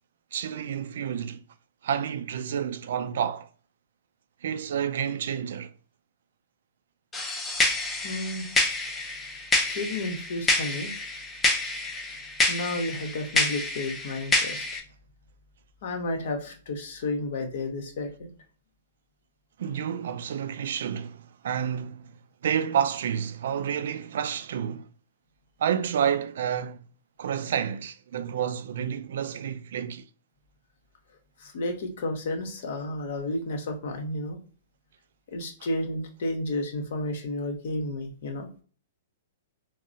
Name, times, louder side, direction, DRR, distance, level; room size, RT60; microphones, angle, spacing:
voice 1, 0.3-1.4 1.8-3.5 4.4-5.7 19.6-22.1 22.4-24.9 25.6-26.8 27.2-30.1, right 8 dB, 70° right, 0.3 m, -29 dB
sound 1, 7.1-14.8, left 2 dB, 15° left, 0.6 m, -28 dB
voice 2, 8.0-8.5 9.7-10.9 12.5-14.6 15.8-18.3 31.4-34.4 35.3-38.5, left 1 dB, 65° left, 0.9 m, -32 dB
3.8 x 2.0 x 2.6 m
hypercardioid pair, 140°, 0 cm